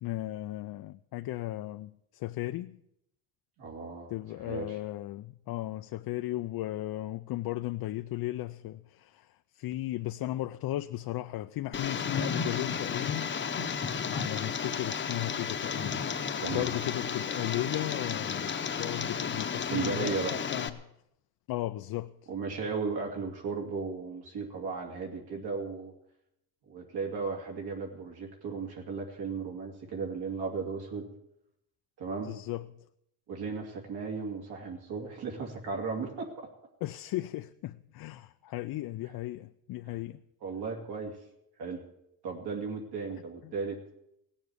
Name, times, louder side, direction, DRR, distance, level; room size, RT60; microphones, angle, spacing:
voice 1, 0.0-2.8 4.1-13.3 14.1-20.8 21.5-22.1 32.2-32.7 36.8-40.2 43.4-43.5, left 15 dB, 65° left, 0.5 m, -36 dB
voice 2, 3.6-4.1 4.4-4.8 16.4-16.7 19.7-20.4 22.3-25.9 26.7-31.1 32.0-32.3 33.3-36.5 39.9-40.0 40.4-41.2 41.6-41.8 42.2-43.8, right 4 dB, 75° right, 2.8 m, -35 dB
Tick, 11.7-20.7, left 6 dB, 30° left, 0.8 m, -33 dB
17.5 x 7.2 x 9.7 m
cardioid pair, 165°, 39 cm